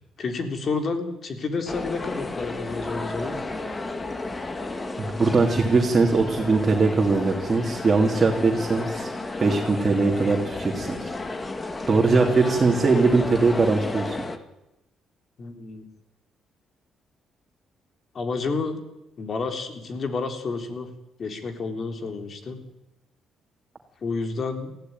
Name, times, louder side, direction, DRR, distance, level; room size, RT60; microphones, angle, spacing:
voice 1, 0.2-3.3 15.4-15.9 18.1-18.8 19.2-20.9 21.2-22.6 24.0-24.7, left 4 dB, 50° left, 6 dB, 3.7 m, -30 dB
sound 1, 1.7-14.4, left 2 dB, 25° left, 2.0 m, -33 dB
voice 2, 5.0-9.1 9.4-11.1 11.9-14.2, right 3 dB, 35° right, 1 dB, 3.0 m, -21 dB
18.5 x 15.0 x 9.6 m, 0.94 s
cardioid pair, 90°, 0 cm